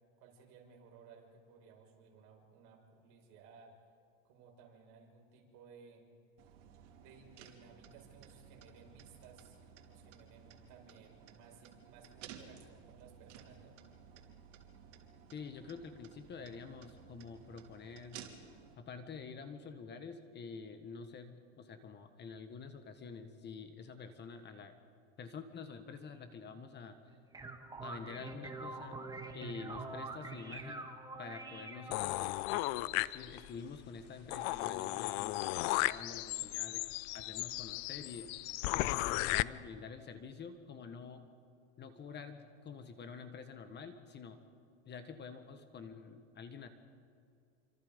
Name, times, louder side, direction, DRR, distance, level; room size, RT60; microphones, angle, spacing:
voice 1, 0.2-3.8 4.2-6.1 7.0-13.8, right 5 dB, 60° right, 0 dB, 6.3 m, -59 dB
sound 1, 6.4-18.7, right 8 dB, 85° right, 3.3 m, -56 dB
voice 2, 15.3-18.3 18.8-24.7 25.2-27.0 27.8-29.0 29.3-30.9 31.2-36.8 37.1-38.3 38.7-41.2 41.8-44.4 44.8-46.7, left 5 dB, 30° left, 8 dB, 1.5 m, -48 dB
sound 2, 27.1-32.3, right 3 dB, 10° right, 2.0 m, -45 dB
sound 3, 31.9-33.6 34.0-34.1 34.3-39.4, left 19 dB, 60° left, 0.6 m, -35 dB
28.0 x 25.5 x 5.3 m, 2.4 s
supercardioid pair, 140°, 36 cm